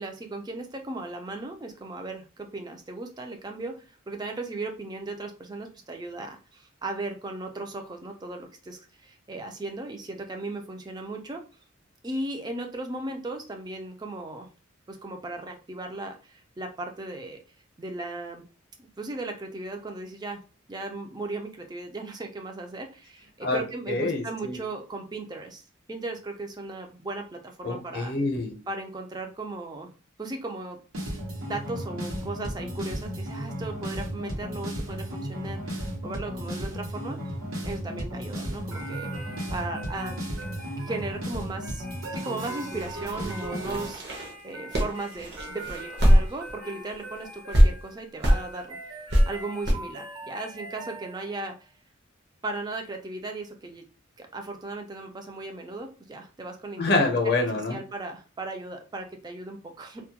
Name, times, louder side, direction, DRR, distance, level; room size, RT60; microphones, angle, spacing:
voice 1, 0.0-2.2 2.5-3.7 4.1-6.3 6.8-8.8 9.3-11.4 12.0-14.5 15.0-16.1 16.6-16.7 17.0-17.4 17.8-18.4 19.0-20.4 20.7-22.9 23.5-25.5 25.9-27.2 27.7-28.1 28.7-29.9 30.2-30.8 31.4-34.7 35.1-35.6 36.0-37.2 37.6-39.1 39.5-40.1 40.9-41.6 42.2-44.0 44.4-48.6 49.3-51.5 52.4-53.8 54.3-56.8 57.7-60.0, right 2 dB, 20° right, 4 dB, 0.3 m, -36 dB
voice 2, 23.9-24.6 27.6-28.6 56.8-57.8, left 3 dB, 50° left, 3 dB, 0.6 m, -26 dB
sound 1, 30.9-43.9, equal, 90° right, 0.9 m, -34 dB
sound 2, 38.7-51.5, right 2 dB, 70° right, 1.1 m, -43 dB
sound 3, 42.8-46.6 46.9-47.0 47.5-47.7 48.2-48.4 49.1-49.2 49.6-49.7, equal, 55° right, 0.6 m, -22 dB
2.2 x 2.1 x 2.8 m, 0.35 s
head